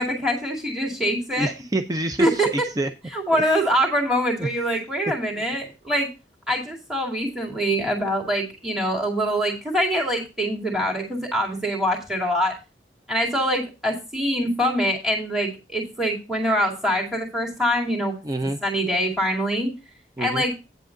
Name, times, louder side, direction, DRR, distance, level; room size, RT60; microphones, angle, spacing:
voice 1, 0.0-1.5 2.2-2.5 3.1-6.1 6.5-12.5 13.1-18.2 18.6-19.7 20.2-20.5, equal, 5° right, -1 dB, 2.2 m, -24 dB
voice 2, 1.4-2.4 2.8-2.9 3.3-3.5 4.4-4.5 18.2-18.6 20.2-20.4, right 2 dB, 20° right, 7 dB, 0.5 m, -26 dB
9.4 x 7.7 x 3.8 m, 0.28 s
head